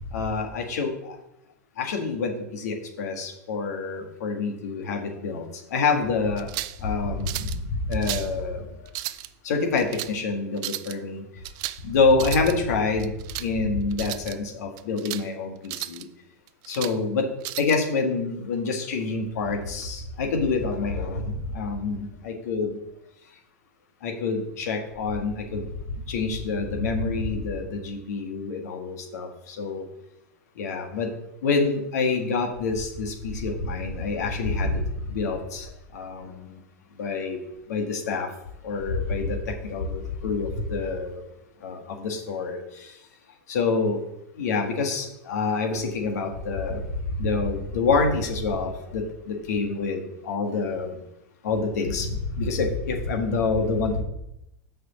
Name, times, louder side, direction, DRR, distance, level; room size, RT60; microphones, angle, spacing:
voice 1, 0.1-1.2 1.8-5.4 5.7-6.5 6.8-7.5 7.9-8.6 9.5-11.2 11.8-13.1 13.4-16.1 16.7-17.3 17.6-22.8 24.0-25.7 26.1-29.3 29.6-29.8 30.6-31.1 31.4-34.8 35.1-35.6 35.9-36.5 37.0-37.4 37.7-38.3 38.6-39.4 39.6-41.2 41.6-42.6 43.5-44.0 44.4-46.8 47.2-50.9 51.4-54.0, left 4 dB, 75° left, 3 dB, 1.8 m, -27 dB
sound 1, 6.4-6.8 7.3-7.6 7.9-8.3 8.9-9.3 9.8-10.1 10.6-10.9 11.4-11.8 12.1-12.5 13.0-13.5 13.9-14.4 14.8-15.3 15.6-16.0 16.5-17.0 17.4-17.8, right 17 dB, 50° right, 0.4 m, -34 dB
6.2 x 5.2 x 6.9 m, 0.83 s
hypercardioid pair, 105°, 9 cm